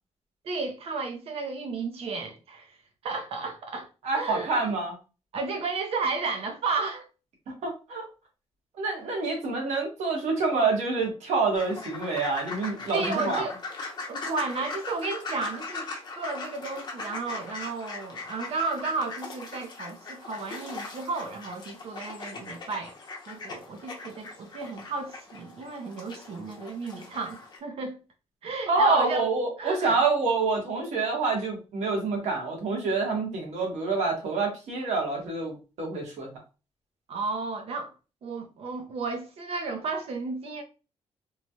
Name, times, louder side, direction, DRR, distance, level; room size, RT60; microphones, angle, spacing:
voice 1, 0.4-2.8 3.0-4.7 5.3-7.1 12.9-13.6 14.1-15.9 16.2-22.9 23.3-28.0 28.4-29.2 29.6-30.0 37.1-37.9 38.2-40.6, right 4 dB, 60° right, 0.6 m, -33 dB
voice 2, 4.0-5.0 7.5-8.1 8.8-13.4 28.7-36.3, right 3 dB, 85° right, 1.2 m, -27 dB
sound 1, 11.6-27.6, left 3 dB, 40° left, 0.7 m, -40 dB
3.1 x 2.2 x 2.7 m
wide cardioid pair, 160°, 11 cm